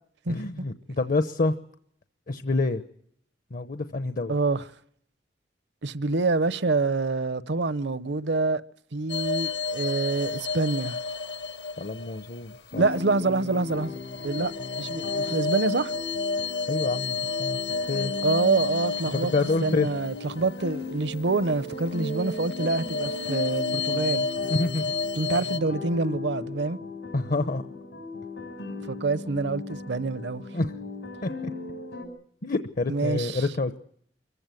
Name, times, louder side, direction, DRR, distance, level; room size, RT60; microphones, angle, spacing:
voice 1, 0.3-1.5 2.3-2.8 3.5-4.4 11.8-12.9 16.7-17.6 17.9-18.1 19.3-19.9 24.5-24.9 27.1-27.6 30.5-30.7 31.2-31.3 32.4-33.8, left 3 dB, 50° left, 0.8 m, -27 dB
voice 2, 4.3-4.6 5.8-8.6 8.9-11.0 12.8-13.9 14.2-14.5 14.8-15.9 18.2-19.3 19.6-24.5 25.2-26.8 28.9-30.4 32.9-33.4, right 3 dB, 65° right, 0.8 m, -26 dB
sound 1, 9.1-13.0 13.5-21.4 21.8-25.6, left 4 dB, 70° left, 1.2 m, -31 dB
sound 2, 12.7-32.1, left 3 dB, 85° left, 5.9 m, -37 dB
24.5 x 15.0 x 9.2 m
head